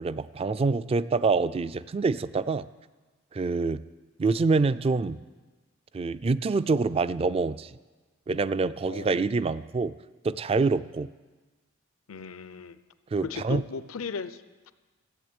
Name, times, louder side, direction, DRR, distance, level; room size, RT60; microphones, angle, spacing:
voice 1, 0.0-2.7 3.3-3.8 4.2-5.2 5.9-7.7 8.3-9.9 10.2-11.1 13.1-13.6, right 4 dB, 30° right, 16 dB, 0.3 m, -26 dB
voice 2, 8.9-9.2 12.1-12.8 13.2-14.7, left 5 dB, 90° left, 14 dB, 0.6 m, -37 dB
14.0 x 8.1 x 8.8 m, 1.3 s
head